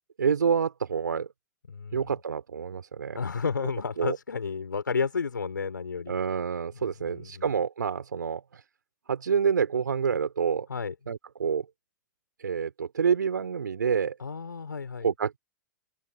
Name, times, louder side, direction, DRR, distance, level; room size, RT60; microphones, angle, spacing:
voice 1, 0.2-1.3 1.9-3.2 3.6-3.7 4.0-4.2 6.1-8.6 9.1-10.7 11.1-11.7 12.4-14.2 15.0-15.4, right 6 dB, 75° right, 4.7 m, -27 dB
voice 2, 1.7-2.1 3.1-6.2 7.0-7.5 10.7-10.9 14.2-15.1, left 5 dB, 75° left, 6.3 m, -32 dB
open air
figure-of-eight pair, 105°, 10 cm